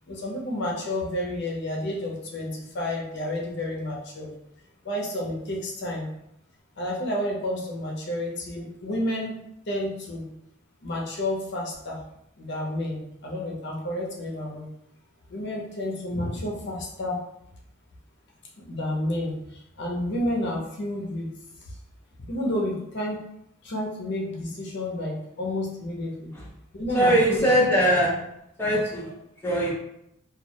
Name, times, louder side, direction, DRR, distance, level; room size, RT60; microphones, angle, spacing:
voice 1, 0.1-4.3 4.8-6.1 6.8-9.3 9.7-10.2 10.8-12.0 12.4-14.7 15.3-17.2 18.6-21.3 21.7-21.8 22.2-23.2 23.6-26.3 26.7-27.5, left 1 dB, 55° left, -2 dB, 0.6 m, -30 dB
voice 2, 26.9-28.2 28.6-29.1 29.4-29.7, right 1 dB, 10° left, -6 dB, 0.6 m, -21 dB
2.3 x 2.1 x 2.7 m, 0.78 s
head